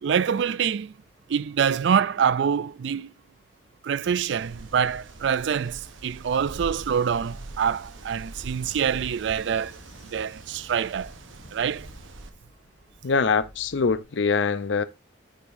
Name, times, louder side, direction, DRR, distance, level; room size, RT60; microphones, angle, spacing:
voice 1, 0.0-0.9 1.3-3.1 3.8-9.8 10.1-11.1 11.5-11.9, right 7 dB, 65° right, 0.3 m, -25 dB
Train, 4.0-14.0, equal, 40° left, 1.4 m, -53 dB
Wind, 4.4-12.3, right 2 dB, 80° right, 1.0 m, -43 dB
voice 2, 13.0-14.8, left 5 dB, 70° left, 0.6 m, -23 dB
10.0 x 4.9 x 2.6 m
head